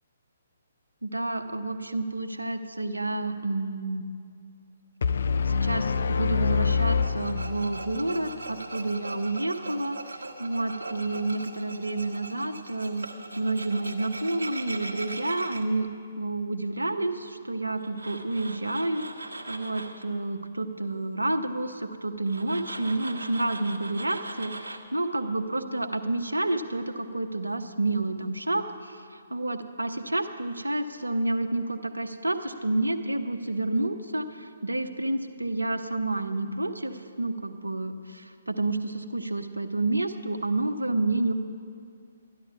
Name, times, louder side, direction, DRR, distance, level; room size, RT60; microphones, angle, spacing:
voice 1, 1.0-4.0 5.4-15.9 16.2-41.3, right 2 dB, 85° right, 8 dB, 0.8 m, -29 dB
sound 1, 5.0-8.1, left 5 dB, 60° left, 0.4 m, -26 dB
Tools, 7.0-15.6 17.8-20.0 22.3-24.8, right 2 dB, 70° right, 1.2 m, -40 dB
13.0 x 10.5 x 5.9 m, 2.3 s
figure-of-eight pair, 135°, 0 cm